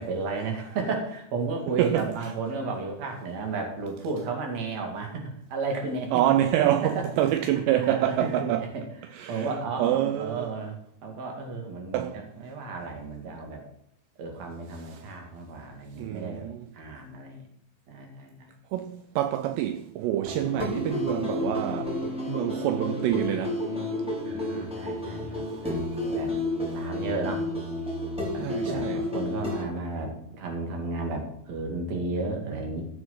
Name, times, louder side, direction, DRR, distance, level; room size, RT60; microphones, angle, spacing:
voice 1, 0.0-6.2 6.8-7.1 7.5-13.6 14.2-16.5 16.7-17.5 17.9-18.5 24.2-26.3 26.7-27.4 28.3-32.9, right 3 dB, 45° right, 2.9 m, -33 dB
voice 2, 1.8-2.3 6.1-8.7 9.1-9.5 9.8-10.5 11.9-12.2 14.8-15.0 16.0-16.7 18.7-23.7 28.4-29.1, right 12 dB, 80° right, 2.6 m, -27 dB
sound 1, 20.2-29.6, left 1 dB, ahead, 2.5 m, -31 dB
15.5 x 7.3 x 5.7 m
omnidirectional pair, 5.3 m